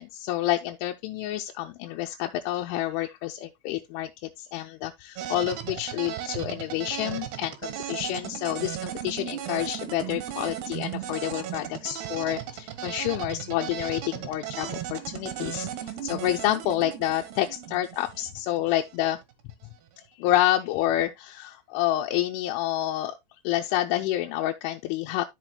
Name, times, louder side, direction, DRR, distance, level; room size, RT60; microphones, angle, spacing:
voice 1, 0.0-19.2 20.2-23.2 23.4-25.3, left 14 dB, 80° left, 3.0 m, -28 dB
sound 1, 5.2-19.1, right 11 dB, 70° right, 2.8 m, -36 dB
13.0 x 6.1 x 2.2 m
omnidirectional pair, 5.7 m